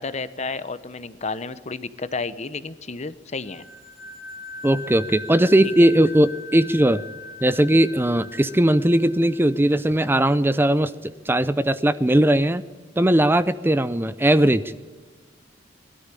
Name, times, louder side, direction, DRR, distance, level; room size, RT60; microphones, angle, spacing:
voice 1, 0.0-3.7 5.8-5.9, left 4 dB, 40° left, 14 dB, 0.9 m, -31 dB
sound 1, 3.5-9.9, left 3 dB, 60° right, 4.1 m, -40 dB
voice 2, 4.6-7.0 7.4-12.6 13.0-14.6, right 1 dB, 10° right, 14 dB, 0.5 m, -19 dB
21.0 x 13.0 x 9.9 m, 1.5 s
head